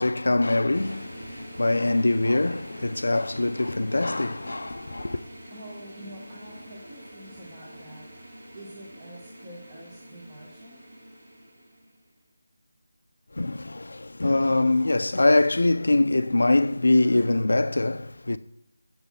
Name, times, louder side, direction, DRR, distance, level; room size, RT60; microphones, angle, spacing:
voice 1, 0.0-5.2 13.3-18.4, left 2 dB, 80° left, 0.4 m, -23 dB
sound 1, 0.7-12.0, right 1 dB, 50° right, 2.2 m, -45 dB
voice 2, 5.5-8.1 8.5-10.9, right 1 dB, 15° right, 1.0 m, -46 dB
7.0 x 4.0 x 5.6 m
figure-of-eight pair, 170°, 0 cm